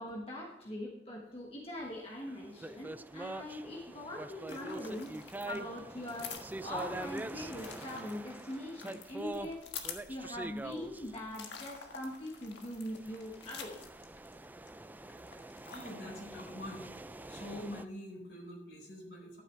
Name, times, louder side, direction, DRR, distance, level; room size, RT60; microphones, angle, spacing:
voice 1, 0.0-9.7 10.1-13.8, left 1 dB, 35° left, -1 dB, 1.3 m, -42 dB
sound 1, 2.2-11.9 12.8-17.8, right 2 dB, 10° right, 0.4 m, -44 dB
sound 2, 4.5-14.7 15.0-15.9, left 6 dB, 85° left, 1.5 m, -48 dB
voice 2, 15.7-16.8 17.1-19.4, left 1 dB, 65° left, 0 dB, 3.9 m, -45 dB
11.5 x 9.4 x 3.3 m, 0.96 s
head